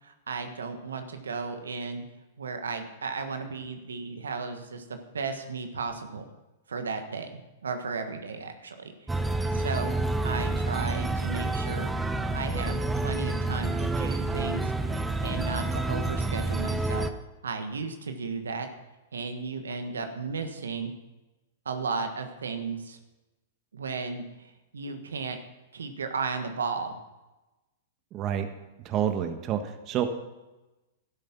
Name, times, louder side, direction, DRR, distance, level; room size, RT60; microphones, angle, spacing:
voice 1, 0.0-2.0 2.4-6.3 6.7-8.9 9.5-12.8 13.0-14.7 15.2-17.1 17.4-18.7 19.1-20.9 21.6-23.0 23.7-25.4 25.7-27.0, right 4 dB, 85° right, 7 dB, 1.4 m, -34 dB
sound 1, 9.1-17.1, right 2 dB, 10° right, 0.8 m, -29 dB
voice 2, 28.1-28.5 28.8-30.1, right 10 dB, 35° right, 7 dB, 1.4 m, -28 dB
12.0 x 10.5 x 6.0 m, 1.1 s
hypercardioid pair, 115°, 0 cm